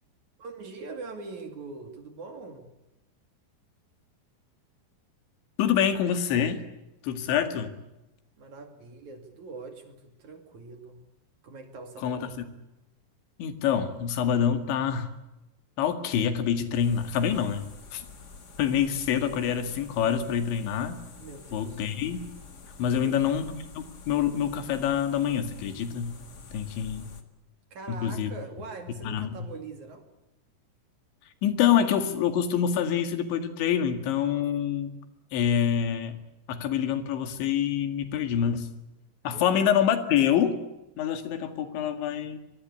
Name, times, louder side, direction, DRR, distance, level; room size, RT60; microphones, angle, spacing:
voice 1, 0.4-2.7 8.4-11.0 11.4-12.4 21.2-21.9 22.8-23.3 27.7-30.1 39.3-39.5, right 3 dB, 50° right, 6 dB, 3.2 m, -42 dB
voice 2, 5.6-6.6 7.0-7.7 12.0-12.5 13.4-15.1 15.8-18.1 18.6-21.0 21.5-22.3 22.8-23.5 23.8-26.2 26.5-27.1 27.9-28.3 29.0-29.5 31.4-35.0 35.3-36.2 36.5-38.7 39.2-40.6 41.0-42.4, left 8 dB, 85° left, 8 dB, 4.3 m, -26 dB
sound 1, 16.8-27.2, left 4 dB, 50° left, 1.2 m, -48 dB
24.5 x 21.5 x 8.4 m, 0.96 s
omnidirectional pair, 5.2 m